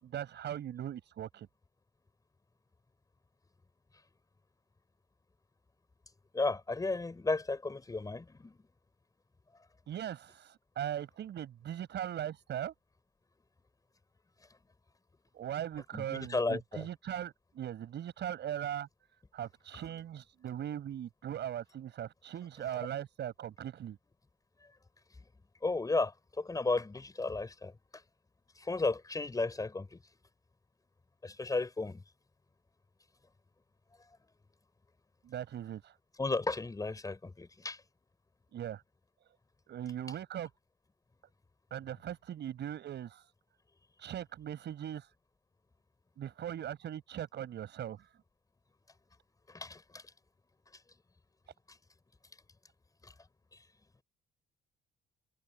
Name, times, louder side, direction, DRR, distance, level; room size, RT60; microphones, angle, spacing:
voice 1, 0.0-1.5 9.9-12.7 15.3-18.9 19.3-24.0 35.2-35.9 38.5-38.8 39.7-40.5 41.7-43.3 44.0-45.1 46.2-48.1, right 10 dB, 60° right, 6.6 m, -39 dB
voice 2, 6.3-8.6 15.9-16.9 25.6-27.7 28.6-30.0 31.2-32.0 36.2-37.8 49.5-50.0 53.0-53.1, left 3 dB, 15° left, 4.8 m, -34 dB
cardioid pair, 130°, 20 cm